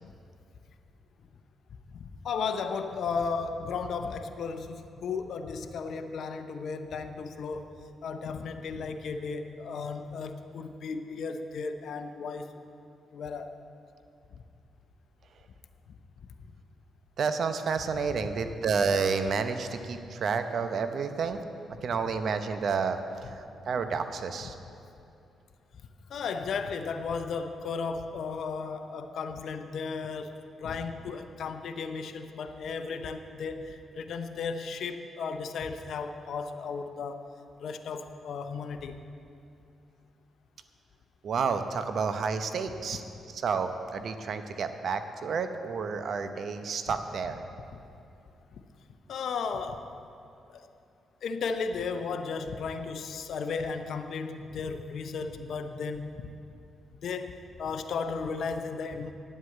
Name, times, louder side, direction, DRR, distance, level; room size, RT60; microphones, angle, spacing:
voice 1, 1.9-7.7 8.0-12.5 13.1-13.6 26.1-37.3 37.6-39.0 47.7-47.8 49.1-49.9 50.5-50.7 51.2-56.3 57.0-59.1, left 5 dB, 70° left, 7 dB, 0.7 m, -35 dB
voice 2, 17.2-21.4 21.8-24.6 41.2-43.0 43.3-47.4, right 5 dB, 65° right, 9 dB, 0.8 m, -30 dB
9.7 x 8.1 x 7.8 m, 2.6 s
cardioid pair, 65°, 0 cm